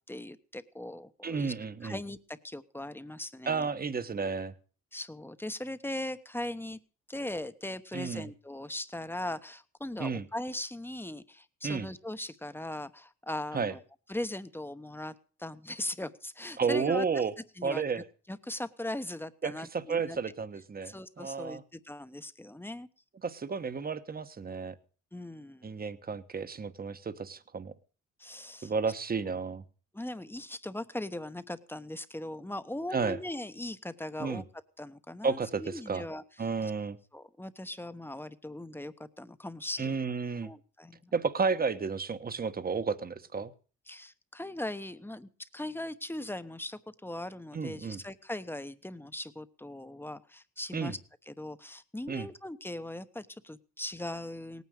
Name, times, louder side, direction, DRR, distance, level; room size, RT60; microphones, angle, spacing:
voice 1, 0.1-1.5 1.8-3.7 4.9-6.8 7.1-13.8 14.1-17.2 17.6-20.2 20.8-22.9 25.1-25.7 28.2-28.7 29.9-34.4 34.8-36.2 36.6-36.7 37.1-40.0 40.4-41.1 43.9-51.0 51.3-54.6, left 1 dB, 5° left, 12 dB, 1.0 m, -39 dB
voice 2, 1.2-2.0 3.5-4.5 7.9-8.3 10.0-10.2 11.6-11.9 13.5-13.7 16.6-17.3 17.6-18.0 19.4-21.6 23.2-24.8 25.6-27.7 28.6-29.6 32.9-33.2 34.2-34.4 35.2-36.0 36.4-37.0 39.8-40.5 41.1-43.5 47.5-48.0 50.7-50.9 52.1-52.3, right 5 dB, 30° right, 12 dB, 1.2 m, -32 dB
18.0 x 9.5 x 6.5 m, 0.39 s
cardioid pair, 90°, 30 cm